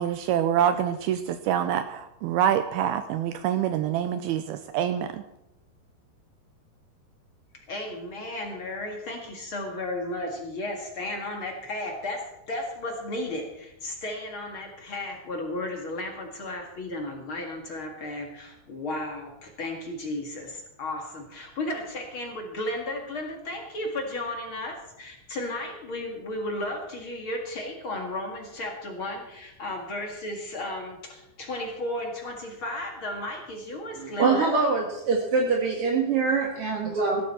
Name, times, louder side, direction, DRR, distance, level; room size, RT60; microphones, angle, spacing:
voice 1, 0.0-5.2, right 10 dB, 80° right, 10 dB, 2.3 m, -26 dB
voice 2, 7.7-34.5, left 1 dB, 45° left, 2 dB, 1.8 m, -34 dB
voice 3, 33.9-37.2, right 4 dB, 60° right, 0 dB, 1.5 m, -24 dB
17.0 x 13.5 x 4.3 m, 0.85 s
omnidirectional pair, 4.9 m